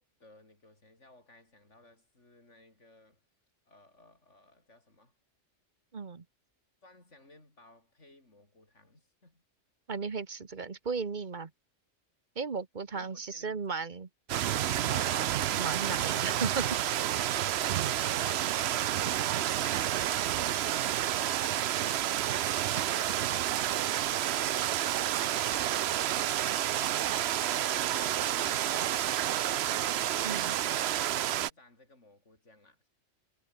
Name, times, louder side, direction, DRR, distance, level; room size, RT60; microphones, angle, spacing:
voice 1, 0.0-3.2 3.7-5.1 6.8-9.4 12.9-13.8 17.6-18.6 18.8-19.5 20.3-24.7 25.1-26.9 27.8-30.2 30.6-32.9, left 2 dB, 65° left, 6.6 m, -59 dB
voice 2, 5.9-6.2 9.9-11.5 12.3-14.1 14.9-15.3 15.6-16.6 30.2-30.6, right 4 dB, 40° right, 1.4 m, -35 dB
sound 1, 14.3-31.5, right 12 dB, 65° right, 0.8 m, -30 dB
omnidirectional pair, 1.3 m